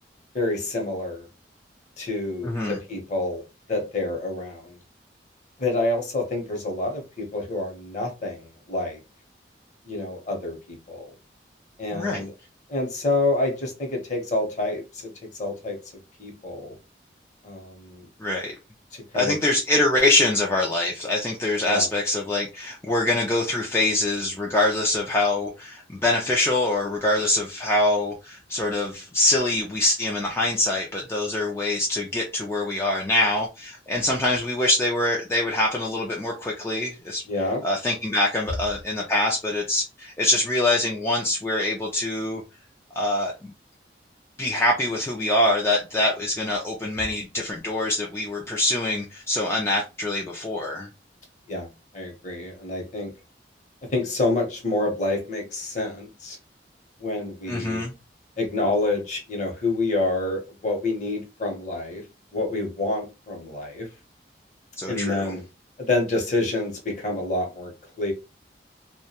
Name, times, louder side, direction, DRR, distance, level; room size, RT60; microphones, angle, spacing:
voice 1, 0.3-1.3 2.0-3.4 3.7-4.8 5.6-9.0 9.9-11.0 11.8-12.3 12.7-15.1 15.4-15.8 16.2-16.7 17.4-18.0 18.9-19.3 21.6-21.9 37.3-37.6 51.5-51.7 51.9-53.1 53.9-56.4 57.0-57.8 58.4-62.0 62.3-63.9 64.9-65.4 65.8-68.1, left 2 dB, 40° left, 0.8 m, -27 dB
voice 2, 2.4-2.8 11.9-12.2 18.2-18.5 19.1-37.2 37.6-42.4 43.0-43.5 44.4-50.9 57.5-57.9 64.8-65.3, left 2 dB, 15° left, 0.3 m, -24 dB
2.3 x 2.2 x 2.7 m
head